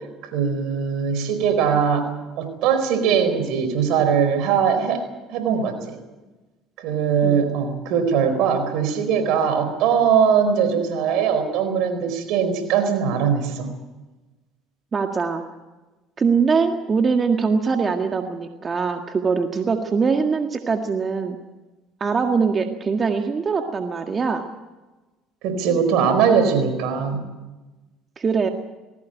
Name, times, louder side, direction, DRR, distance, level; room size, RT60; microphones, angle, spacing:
voice 1, 0.2-2.1 2.4-5.0 5.3-6.0 6.8-13.7 25.4-27.2, right 7 dB, 70° right, 8 dB, 4.5 m, -21 dB
voice 2, 14.9-15.4 16.2-21.4 22.0-24.4 28.2-28.5, right 5 dB, 35° right, 5 dB, 1.8 m, -22 dB
20.0 x 17.0 x 9.2 m, 1.2 s
supercardioid pair, 85°, 0 cm